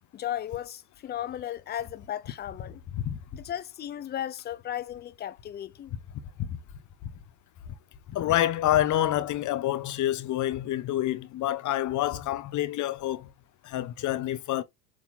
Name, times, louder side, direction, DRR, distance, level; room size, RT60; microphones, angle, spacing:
voice 1, 0.1-2.8 3.3-5.9, left 11 dB, 20° left, 0.6 m, -35 dB
voice 2, 8.1-13.3 13.6-14.6, left 13 dB, 35° left, 1.2 m, -27 dB
7.6 x 3.4 x 4.0 m
hypercardioid pair, 105°, 49 cm